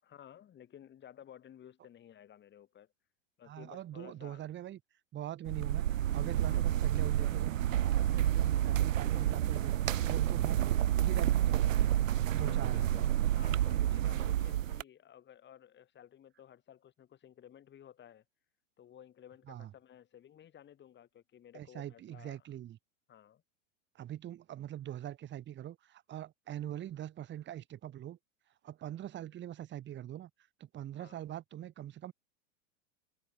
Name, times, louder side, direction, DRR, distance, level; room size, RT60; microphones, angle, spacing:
voice 1, 0.0-2.9 3.4-4.5 6.4-6.7 12.3-18.2 18.8-22.4 23.1-23.4 30.9-31.2, left 10 dB, 30° left, 6.7 m, -55 dB
voice 2, 3.4-4.8 5.1-7.6 7.9-9.7 10.0-12.0 12.3-12.9 19.5-19.7 21.5-22.8 23.9-28.2 28.6-30.3 30.6-32.1, right 12 dB, 30° right, 2.4 m, -43 dB
sound 1, 5.5-14.8, right 12 dB, 80° right, 0.6 m, -29 dB
figure-of-eight pair, 95°, 38 cm